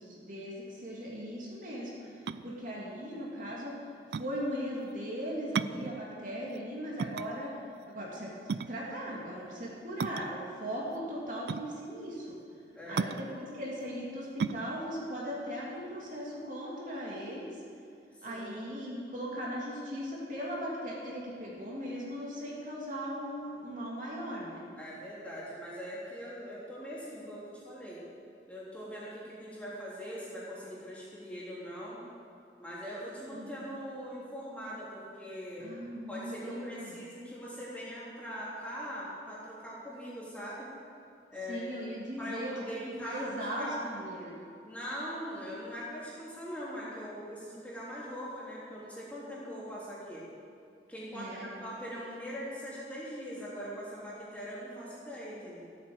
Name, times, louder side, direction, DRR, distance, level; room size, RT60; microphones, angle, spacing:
voice 1, 0.0-3.8 4.1-7.6 7.9-8.3 8.7-12.3 12.9-17.6 18.2-24.6 33.3-33.5 35.6-37.1 41.5-42.7 43.0-44.4 51.1-51.9, equal, 45° right, -5 dB, 2.8 m, -38 dB
sound 1, 2.1-16.5, right 5 dB, 70° right, 0.4 m, -38 dB
voice 2, 12.7-13.1 18.2-18.7 24.8-28.0 28.5-32.0 32.6-35.7 36.1-40.7 41.3-41.8 42.2-43.9 44.6-50.2 50.9-55.6, equal, 10° left, -8 dB, 3.6 m, -41 dB
15.5 x 8.7 x 7.9 m, 2.4 s
head